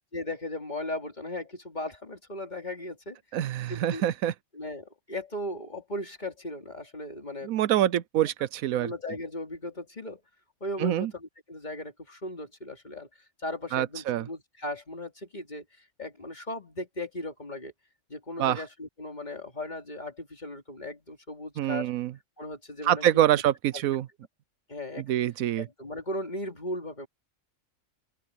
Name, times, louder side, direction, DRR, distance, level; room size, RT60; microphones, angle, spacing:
voice 1, 0.1-3.2 3.7-4.0 4.5-7.5 8.8-10.2 10.6-13.1 13.4-17.7 18.1-21.9 22.4-23.1 24.7-25.0 25.6-27.1, left 1 dB, 35° left, 2.8 m, -37 dB
voice 2, 3.3-4.3 7.4-8.9 10.8-11.1 13.7-14.2 18.4-18.6 21.6-22.1 22.8-24.1 25.0-25.7, right 12 dB, 90° right, 1.1 m, -25 dB
open air
omnidirectional pair, 1.4 m